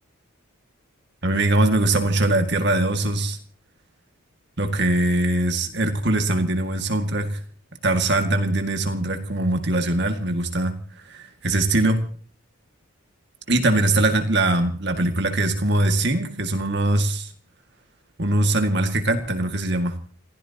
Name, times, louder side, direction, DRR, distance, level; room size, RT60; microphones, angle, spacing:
voice 1, 1.2-3.4 4.6-7.4 7.8-10.8 11.1-12.1 13.5-17.3 18.2-19.9, right 2 dB, 55° right, 5 dB, 2.1 m, -22 dB
28.5 x 16.0 x 3.0 m, 0.41 s
head